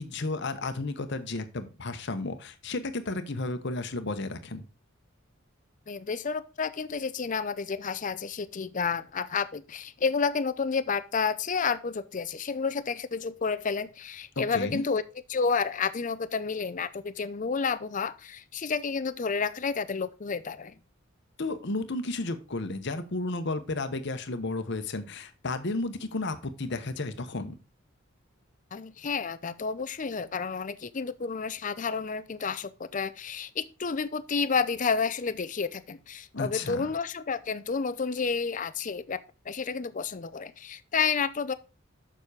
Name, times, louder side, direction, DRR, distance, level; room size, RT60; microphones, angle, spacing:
voice 1, 0.0-4.6 14.4-14.8 21.4-27.6 36.3-36.9, left 2 dB, 55° left, 1.0 m, -33 dB
voice 2, 5.9-15.0 15.3-20.8 28.7-39.2 39.5-41.5, left 5 dB, 40° left, 0.5 m, -30 dB
7.1 x 6.1 x 4.8 m
head